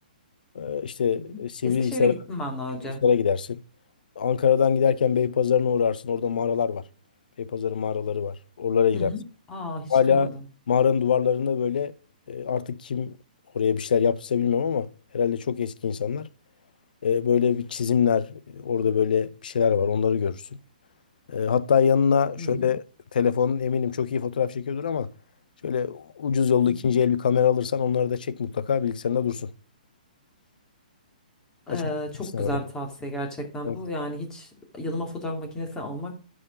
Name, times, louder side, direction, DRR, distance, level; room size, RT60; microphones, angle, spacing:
voice 1, 0.5-2.1 3.0-3.6 4.2-6.8 7.4-9.1 9.9-10.3 10.7-11.9 12.3-13.1 13.5-14.9 15.1-16.3 17.0-20.4 21.3-22.8 23.1-25.1 25.6-29.5 31.7-31.8 32.3-32.6 33.6-33.8, left 7 dB, 70° left, 0.7 m, -23 dB
voice 2, 1.6-3.0 8.9-9.2 9.5-10.4 22.4-22.7 26.6-26.9 31.7-36.1, left 1 dB, 15° left, 2.3 m, -33 dB
9.7 x 5.0 x 5.2 m
hypercardioid pair, 140°, 5 cm